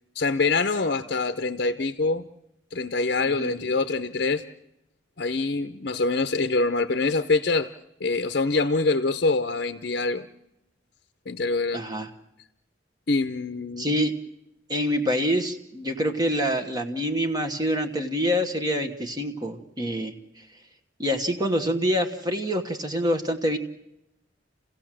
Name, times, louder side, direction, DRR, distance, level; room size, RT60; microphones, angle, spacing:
voice 1, 0.1-2.3 2.7-4.4 5.2-7.7 8.0-10.3 11.3-11.8 13.1-14.0, left 3 dB, 55° left, 8 dB, 0.7 m, -25 dB
voice 2, 11.7-12.1 13.8-14.1 14.7-20.1 21.0-23.6, equal, 20° right, 6 dB, 1.2 m, -26 dB
29.5 x 16.0 x 7.5 m, 0.88 s
head